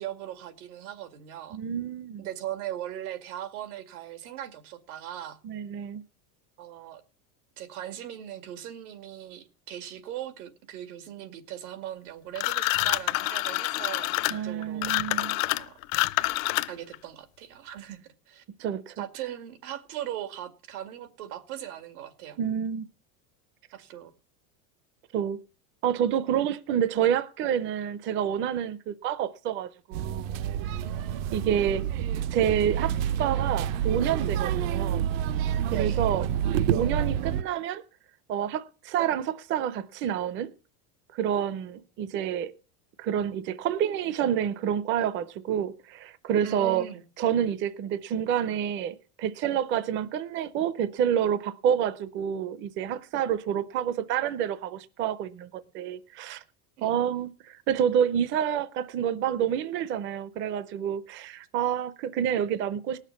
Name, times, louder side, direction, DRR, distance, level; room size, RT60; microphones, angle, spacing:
voice 1, 0.0-1.6 2.2-5.4 6.6-7.0 7.6-14.9 15.6-15.8 16.7-18.4 19.0-22.4 23.7-24.1 30.8-31.5 35.7-36.0 46.4-47.0 56.8-57.0, right 11 dB, 85° right, 2.3 m, -39 dB
voice 2, 1.5-2.3 5.4-6.0 14.3-15.4 18.6-18.9 22.4-22.9 25.1-25.4 25.8-30.3 31.3-31.9 32.3-35.1 35.7-36.3 36.7-37.8 38.3-40.5 41.1-42.5 43.0-46.9 47.2-56.4 56.8-63.0, right 9 dB, 30° right, 0.6 m, -28 dB
sound 1, 12.3-16.9, left 20 dB, 65° left, 0.7 m, -27 dB
sound 2, 29.9-37.4, right 10 dB, 65° right, 0.9 m, -28 dB
18.5 x 6.6 x 7.0 m
supercardioid pair, 155°, 43 cm